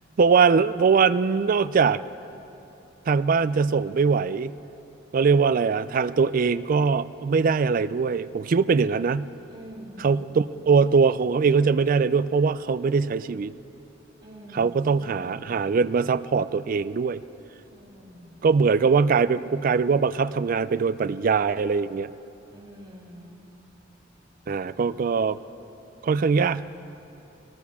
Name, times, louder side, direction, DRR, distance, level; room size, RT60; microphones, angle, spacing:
voice 1, 0.2-2.0 3.1-4.5 5.1-9.3 10.0-13.5 14.6-17.2 18.4-22.1 24.5-25.4 26.0-26.7, right 5 dB, 45° right, 15 dB, 0.4 m, -22 dB
voice 2, 9.5-10.2 14.2-15.4 17.7-18.5 22.5-23.5, equal, 25° right, -5 dB, 3.5 m, -45 dB
22.0 x 18.5 x 3.6 m, 2.9 s
head